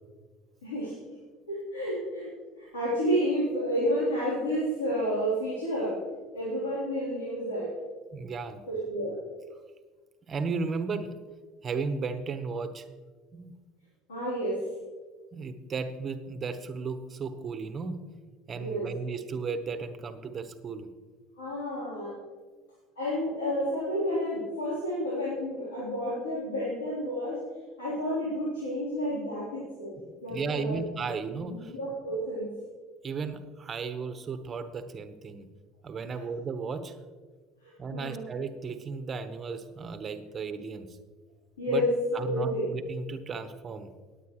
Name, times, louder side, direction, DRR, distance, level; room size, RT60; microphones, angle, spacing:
voice 1, 0.6-0.9 1.5-2.3 2.6-6.0 6.3-7.7 8.7-9.2 14.1-14.7 18.5-18.9 21.4-22.2 23.0-27.4 27.8-29.9 30.2-30.9 31.5-32.5 36.1-36.2 37.6-38.3 41.6-41.9 42.2-42.7, equal, 90° left, -9 dB, 3.6 m, -30 dB
voice 2, 8.1-8.6 10.3-11.1 11.6-12.8 13.3-13.5 15.3-18.0 18.5-20.9 21.8-21.9 30.3-31.7 33.0-35.5 35.8-36.9 37.8-40.9 41.7-43.9, right 4 dB, 40° right, 9 dB, 1.1 m, -35 dB
19.5 x 8.5 x 3.2 m, 1.4 s
hypercardioid pair, 65°, 0 cm